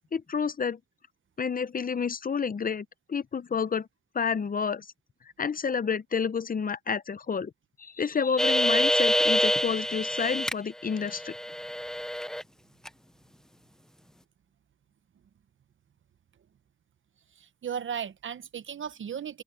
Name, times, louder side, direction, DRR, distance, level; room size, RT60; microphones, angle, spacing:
voice 1, 0.1-0.8 1.4-3.9 4.1-4.9 5.4-7.5 7.8-11.3, left 6 dB, 45° left, 0.7 m, -29 dB
sound 1, 8.4-10.5 10.9-12.4 12.9-13.0, equal, 5° left, 0.5 m, -26 dB
voice 2, 17.4-19.4, right 8 dB, 75° right, 0.8 m, -36 dB
open air
wide cardioid pair, 105°, 20 cm